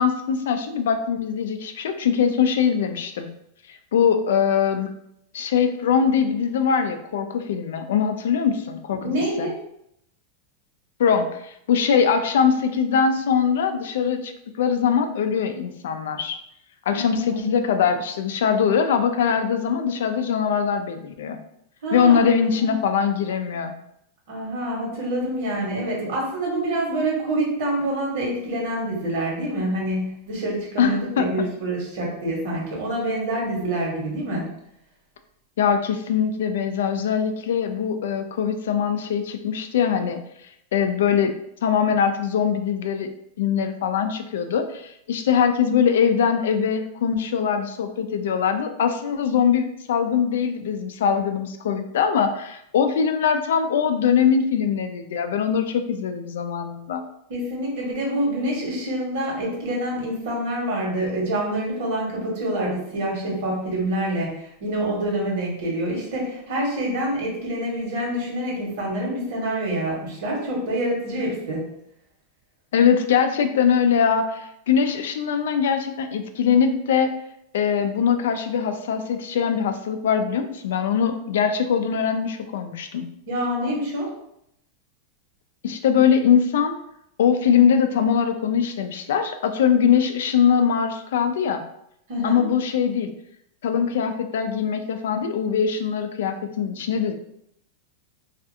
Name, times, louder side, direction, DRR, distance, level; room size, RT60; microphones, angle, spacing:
voice 1, 0.0-3.3 3.7-4.9 5.3-9.5 11.0-14.3 14.6-16.4 16.9-21.4 21.9-23.7 30.8-31.3 35.6-40.2 40.7-41.3 41.6-43.1 43.4-57.0 72.7-77.1 77.5-83.1 85.6-86.8 87.2-91.6 92.2-93.1 93.6-97.1, left 7 dB, 80° left, 7 dB, 0.3 m, -22 dB
voice 2, 9.0-9.6 16.9-17.5 21.8-22.3 22.6-22.8 24.3-34.5 57.3-71.6 83.3-84.1 92.1-92.5, right 1 dB, 70° right, -3 dB, 1.1 m, -26 dB
2.4 x 2.4 x 2.7 m, 0.76 s
supercardioid pair, 145°, 0 cm